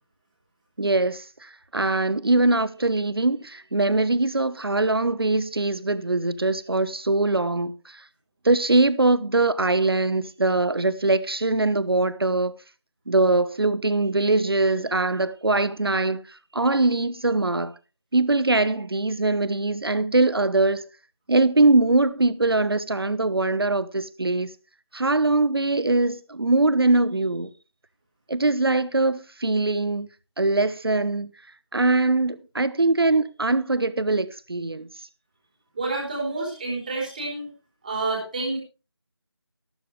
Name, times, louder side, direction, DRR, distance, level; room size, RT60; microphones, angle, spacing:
voice 1, 0.8-8.0 8.4-12.5 13.1-17.7 18.1-20.8 21.3-24.5 24.9-27.5 28.3-30.1 30.4-31.3 31.7-34.9, right 2 dB, 60° right, 1.0 m, -22 dB
voice 2, 35.7-37.5 37.8-38.6, right 3 dB, 20° right, 3.7 m, -28 dB
12.5 x 12.5 x 3.3 m
figure-of-eight pair, 175°, 14 cm